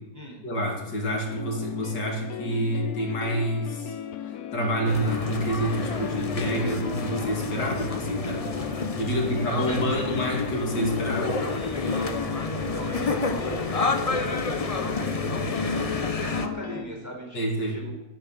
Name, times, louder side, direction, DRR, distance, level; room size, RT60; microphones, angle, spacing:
voice 1, 0.4-3.9 4.5-11.4 17.3-18.0, right 1 dB, 80° left, 0 dB, 3.3 m, -28 dB
sound 1, 1.3-16.9, left 10 dB, 65° left, 1.2 m, -36 dB
sound 2, 4.8-16.5, left 3 dB, 30° left, 0.8 m, -29 dB
voice 2, 9.0-9.5 9.9-10.1 11.5-15.8 16.2-18.0, equal, 10° right, -1 dB, 4.5 m, -40 dB
12.5 x 10.5 x 7.4 m, 1.0 s
omnidirectional pair, 1.8 m